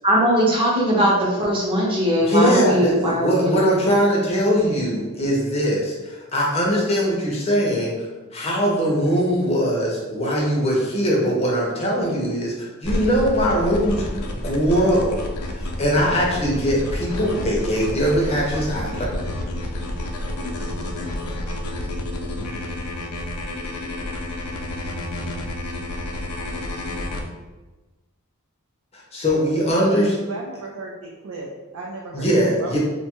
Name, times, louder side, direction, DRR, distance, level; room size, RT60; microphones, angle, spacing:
voice 1, 0.0-3.6, equal, 25° right, -4 dB, 0.6 m, -19 dB
voice 2, 2.3-8.1 8.3-15.1 15.5-19.1 29.1-30.1 32.1-32.8, equal, 30° left, -3 dB, 0.5 m, -21 dB
sound 1, 12.8-27.2, left 1 dB, 85° left, 0.4 m, -29 dB
voice 3, 30.0-32.3 32.6-32.8, right 3 dB, 80° right, -1 dB, 0.4 m, -35 dB
2.6 x 2.2 x 2.9 m, 1.2 s
head